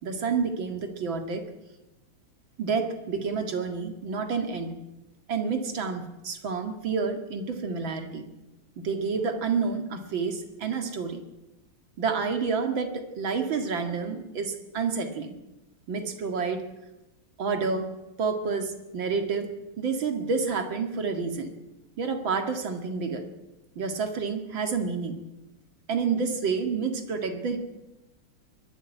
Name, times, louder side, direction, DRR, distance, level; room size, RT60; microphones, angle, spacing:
voice 1, 0.0-1.4 2.6-4.7 5.3-8.3 8.8-11.2 12.0-15.3 15.9-16.6 17.4-17.9 18.2-19.5 19.8-21.5 22.0-23.3 23.8-25.2 25.9-27.6, right 5 dB, 60° right, 6 dB, 2.7 m, -29 dB
22.0 x 12.0 x 10.0 m, 0.99 s
omnidirectional pair, 2.4 m